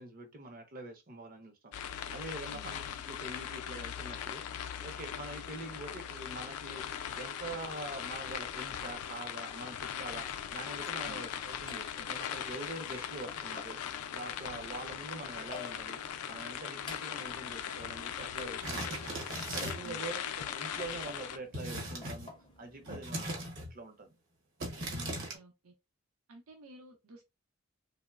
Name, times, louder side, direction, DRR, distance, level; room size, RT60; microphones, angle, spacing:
voice 1, 0.0-1.7 2.1-2.8 3.1-4.4 4.8-6.9 7.1-13.8 14.1-16.0 16.3-19.2 19.5-22.3 22.6-24.2, right 2 dB, 40° right, 0.6 m, -44 dB
sound 1, 1.7-21.4, left 9 dB, 90° left, 0.4 m, -40 dB
sound 2, 10.6-23.2, left 4 dB, 20° left, 0.4 m, -53 dB
sound 3, 18.6-19.9 21.5-22.3 22.8-23.7 24.6-25.4, right 1 dB, 60° right, 0.9 m, -38 dB
voice 2, 19.8-20.3 24.9-25.7 26.3-27.2, right 2 dB, 85° right, 0.7 m, -53 dB
3.0 x 2.1 x 2.3 m
head